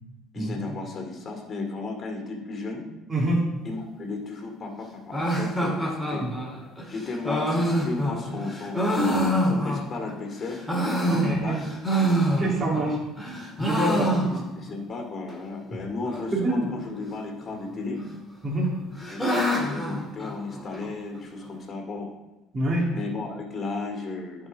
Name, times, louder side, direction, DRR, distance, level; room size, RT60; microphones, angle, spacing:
voice 1, 0.3-2.8 3.6-6.3 6.9-11.6 11.9-12.3 13.7-18.0 19.1-22.1 22.9-24.5, left 3 dB, 40° left, 2 dB, 2.3 m, -35 dB
voice 2, 3.1-3.4 6.2-6.3 11.1-11.6 12.4-13.0 13.6-14.1 16.3-16.7 18.4-18.7 22.5-22.9, right 2 dB, 30° right, -4 dB, 2.8 m, -25 dB
sound 1, 5.1-10.1 10.5-12.9 13.2-14.7 15.0-15.1 15.3-15.4 16.0-16.5 17.5-18.1 18.5-20.9, equal, 5° left, 2.2 m, -26 dB
10.5 x 4.9 x 4.0 m, 1.0 s
supercardioid pair, 80°, 0 cm